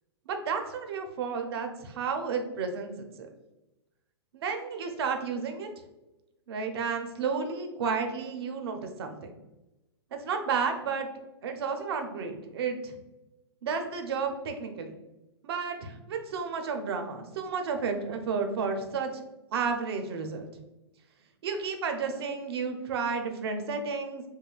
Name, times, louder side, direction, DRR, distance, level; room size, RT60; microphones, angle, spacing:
voice 1, 0.3-3.3 4.3-5.7 6.5-9.2 10.1-11.1 11.4-12.9 13.6-14.9 15.4-19.2 19.5-20.5 21.4-24.2, right 5 dB, 65° right, 5 dB, 0.5 m, -32 dB
2.6 x 2.3 x 2.3 m, 1.0 s
hypercardioid pair, 130°, 14 cm